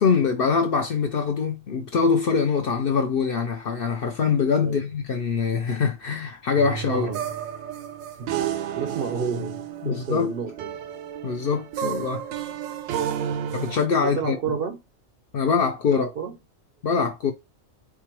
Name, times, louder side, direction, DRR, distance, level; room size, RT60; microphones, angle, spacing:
voice 1, 0.0-7.1 9.8-10.3 11.2-12.2 13.5-14.6 15.3-16.1 16.8-17.3, left 5 dB, 60° left, 0.6 m, -23 dB
sound 1, 6.6-13.9, right 9 dB, 90° right, 1.0 m, -31 dB
voice 2, 6.9-7.2 8.2-8.4 8.8-10.7 14.0-14.8 15.9-16.4, right 6 dB, 60° right, 0.6 m, -31 dB
4.6 x 2.3 x 2.9 m
omnidirectional pair, 1.4 m